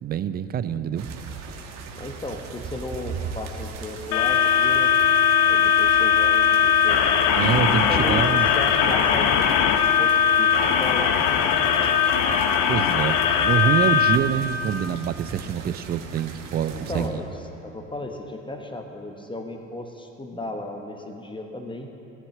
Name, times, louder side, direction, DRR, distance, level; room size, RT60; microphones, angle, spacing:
voice 1, 0.0-1.1 7.4-8.5 12.7-17.2, right 8 dB, 25° right, 13 dB, 0.5 m, -26 dB
sound 1, 1.0-17.1, right 6 dB, 45° right, 1.5 m, -38 dB
voice 2, 1.9-4.9 5.5-7.0 7.7-9.7 10.0-12.0 16.7-17.3 17.6-21.9, left 2 dB, 10° left, 4 dB, 1.2 m, -35 dB
sound 2, 4.1-14.2, left 7 dB, 50° left, 1.0 m, -20 dB
17.0 x 7.3 x 7.5 m, 3.0 s
figure-of-eight pair, 65°, 39 cm